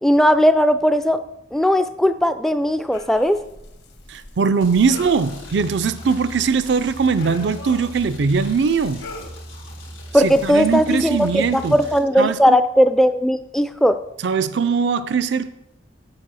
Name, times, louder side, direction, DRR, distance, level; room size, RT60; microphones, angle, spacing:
voice 1, 0.0-1.2 1.5-3.4 10.1-14.0, equal, ahead, 0.3 m, -17 dB
sound 1, 2.9-10.8, left 3 dB, 60° left, 1.2 m, -42 dB
voice 2, 4.1-9.0 10.2-11.8 12.2-12.6 14.2-15.5, right 5 dB, 65° right, 0.4 m, -20 dB
sound 2, 4.6-12.0, equal, 85° left, 2.1 m, -39 dB
7.5 x 7.3 x 6.2 m
head